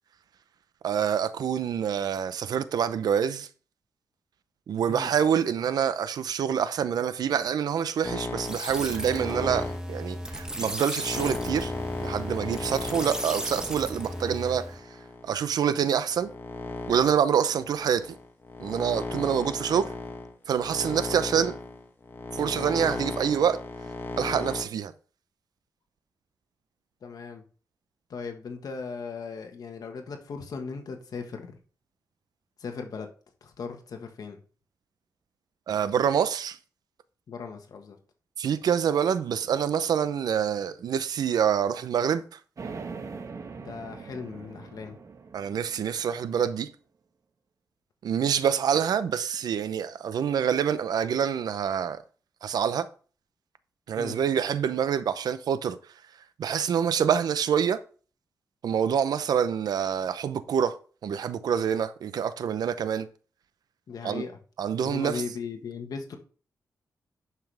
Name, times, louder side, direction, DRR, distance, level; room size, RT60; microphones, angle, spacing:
voice 1, 0.8-3.5 4.7-11.7 12.0-14.8 15.2-16.3 16.9-18.2 18.6-19.9 20.5-21.6 22.3-23.6 24.2-24.9 35.7-36.6 38.4-42.2 45.3-46.7 48.0-52.0 52.4-52.9 53.9-55.8 56.4-57.8 58.6-60.7 61.0-63.1 64.0-64.2 64.6-65.2, right 8 dB, 85° right, 0.7 m, -26 dB
sound 1, 8.0-15.4 16.0-24.6, left 3 dB, 35° left, 2.0 m, -36 dB
sound 2, 8.4-14.8, equal, 10° right, 1.8 m, -35 dB
voice 2, 27.0-27.4 28.1-31.6 32.6-33.1 33.4-34.4 37.3-38.0 43.6-45.0 54.0-54.2 63.9-64.4 64.8-66.2, left 5 dB, 70° left, 1.5 m, -37 dB
sound 3, 42.6-46.5, right 4 dB, 55° right, 1.5 m, -41 dB
11.0 x 5.8 x 3.4 m
cardioid pair, 75°, 7 cm